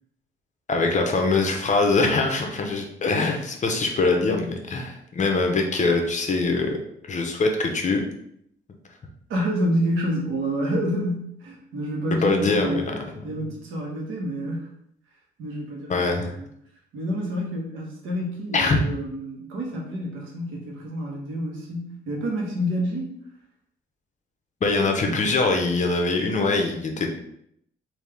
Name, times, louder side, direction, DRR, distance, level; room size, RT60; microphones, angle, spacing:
voice 1, 0.7-6.8 7.1-8.0 12.2-13.0 15.9-16.3 18.5-18.8 24.6-27.1, left 3 dB, 40° left, 3 dB, 0.7 m, -23 dB
voice 2, 9.3-12.9 13.2-14.7 15.4-15.9 16.2-16.5 16.9-23.2 25.0-25.2, equal, 85° right, -1 dB, 1.1 m, -28 dB
3.5 x 2.6 x 3.4 m, 0.72 s
cardioid pair, 90°, 20 cm